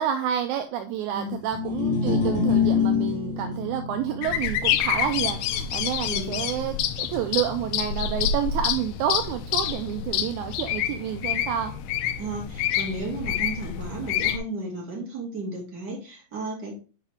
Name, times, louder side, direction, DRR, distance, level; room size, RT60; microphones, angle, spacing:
voice 1, 0.0-11.7, right 9 dB, 80° right, 7 dB, 1.8 m, -29 dB
sound 1, 1.4-7.8, left 6 dB, 60° left, 3.0 m, -28 dB
sound 2, 4.2-14.4, left 10 dB, 90° left, 2.3 m, -28 dB
voice 2, 6.0-6.4 12.2-16.7, right 2 dB, 35° right, -3 dB, 2.6 m, -34 dB
7.3 x 4.9 x 3.4 m, 0.35 s
omnidirectional pair, 3.9 m